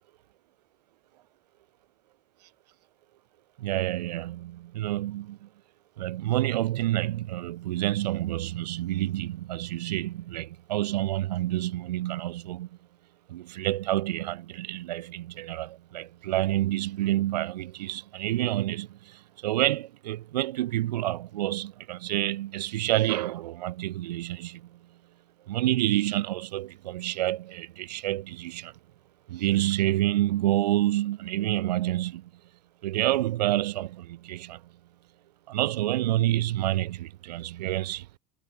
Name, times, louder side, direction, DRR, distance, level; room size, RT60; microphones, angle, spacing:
voice 1, 3.6-5.4 6.0-12.7 13.3-18.9 19.4-24.6 25.5-28.7 29.3-32.2 32.8-34.6 35.5-38.0, right 15 dB, 85° right, 6.6 m, -28 dB
supercardioid pair, 115°, 20 cm